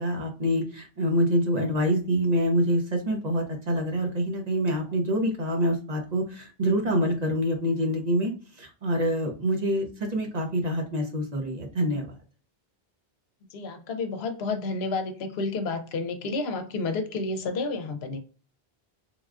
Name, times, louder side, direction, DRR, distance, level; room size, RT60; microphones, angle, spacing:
voice 1, 0.0-12.1, equal, 45° right, 0.7 m, -26 dB
voice 2, 13.5-18.2, left 3 dB, 80° left, 0.8 m, -30 dB
3.3 x 2.3 x 2.3 m
omnidirectional pair, 1.0 m